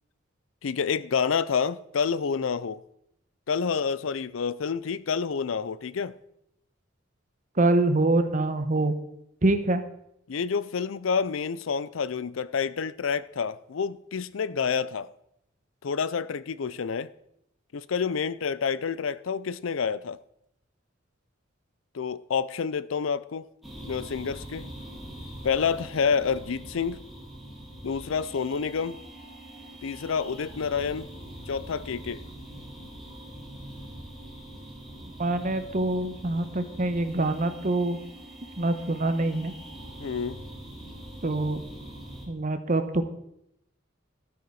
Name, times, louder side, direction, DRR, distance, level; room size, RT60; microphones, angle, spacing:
voice 1, 0.6-2.8 3.5-6.1 10.3-15.1 15.8-17.1 17.7-20.2 21.9-23.5 23.8-24.7 25.4-27.0 27.8-29.0 29.8-31.1 31.5-32.2 40.0-40.4, left 6 dB, 85° left, 0.5 m, -28 dB
voice 2, 7.6-9.0 9.4-9.8 35.2-38.0 38.6-39.5 41.2-41.6 42.3-43.0, right 2 dB, 40° right, 1.0 m, -25 dB
sound 1, 23.6-42.3, right 1 dB, ahead, 3.0 m, -43 dB
13.0 x 9.0 x 4.7 m
head